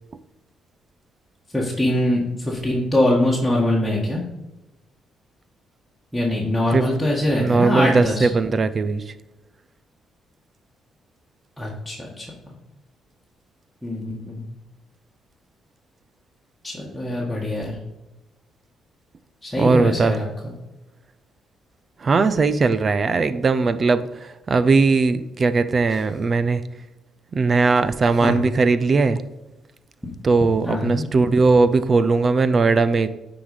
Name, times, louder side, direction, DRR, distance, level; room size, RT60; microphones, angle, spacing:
voice 1, 1.5-4.2 6.1-8.3 11.6-12.6 13.8-14.4 16.6-17.8 19.4-20.5 25.9-26.0 28.2-28.4 30.6-31.1, left 1 dB, 5° left, -6 dB, 1.8 m, -23 dB
voice 2, 7.3-9.1 19.6-20.1 22.0-26.6 27.3-29.2 30.2-33.1, right 4 dB, 40° right, 13 dB, 0.6 m, -19 dB
9.4 x 4.1 x 5.0 m, 1.0 s
cardioid pair, 90°, 0 cm